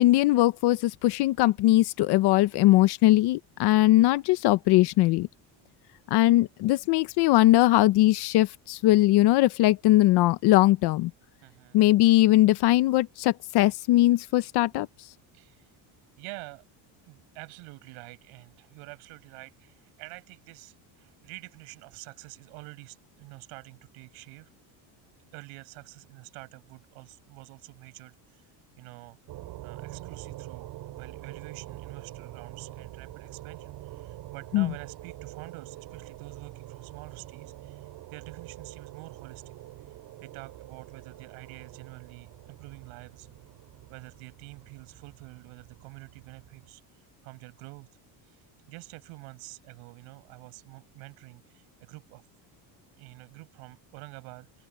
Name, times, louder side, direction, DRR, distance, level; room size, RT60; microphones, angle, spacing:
voice 1, 0.0-5.3 6.1-11.1 11.7-14.9 34.5-34.7, left 16 dB, 55° left, 0.7 m, -21 dB
voice 2, 11.4-11.8 15.3-15.7 16.2-16.6 17.0-24.5 25.3-28.4 28.8-29.2 29.6-37.8 38.1-39.5 40.2-43.3 43.9-46.8 47.2-47.9 48.7-52.3 53.0-54.7, right 25 dB, 85° right, 6.5 m, -47 dB
sound 1, 29.3-46.7, right 15 dB, 55° right, 3.8 m, -45 dB
open air
cardioid pair, 175°, 48 cm